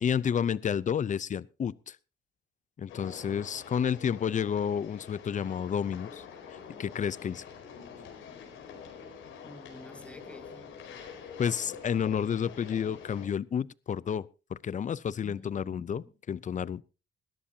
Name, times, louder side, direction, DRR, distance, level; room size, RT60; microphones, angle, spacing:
voice 1, 0.0-2.0 2.8-6.2 6.5-7.4 11.4-16.8, left 8 dB, 40° left, 0.6 m, -31 dB
sound 1, 2.9-13.3, left 6 dB, 90° left, 4.5 m, -46 dB
voice 2, 9.4-10.7 15.1-16.1, left 1 dB, 5° left, 2.4 m, -50 dB
20.0 x 13.0 x 2.8 m
cardioid pair, 90°, 20 cm